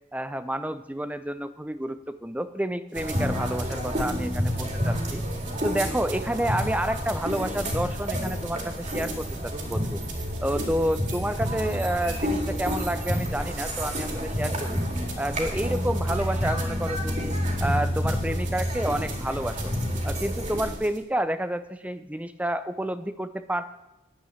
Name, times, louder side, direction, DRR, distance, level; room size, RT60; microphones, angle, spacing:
voice 1, 0.1-5.2 5.6-10.0 10.4-14.8 15.2-17.3 17.6-19.7 20.0-23.7, right 1 dB, 5° right, 12 dB, 0.5 m, -29 dB
sound 1, 2.9-20.7, equal, 35° right, 2.7 m, -29 dB
sound 2, 2.9-21.0, right 6 dB, 70° right, 2.7 m, -45 dB
11.5 x 8.5 x 9.5 m, 1.0 s
head